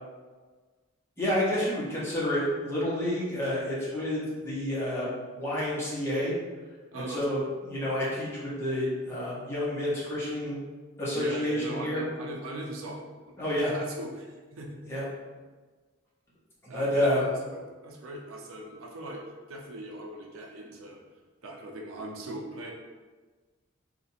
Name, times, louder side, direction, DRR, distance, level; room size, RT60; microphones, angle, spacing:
voice 1, 1.2-5.1 5.3-6.3 6.9-10.6 11.0-12.0 13.4-13.7 14.8-15.0 16.6-17.2, left 1 dB, 10° left, -8 dB, 0.9 m, -29 dB
voice 2, 6.9-7.2 11.1-13.0 13.3-14.8 16.7-21.0 21.4-22.7, right 1 dB, 85° right, 0 dB, 0.6 m, -40 dB
2.8 x 2.5 x 4.1 m, 1.3 s
head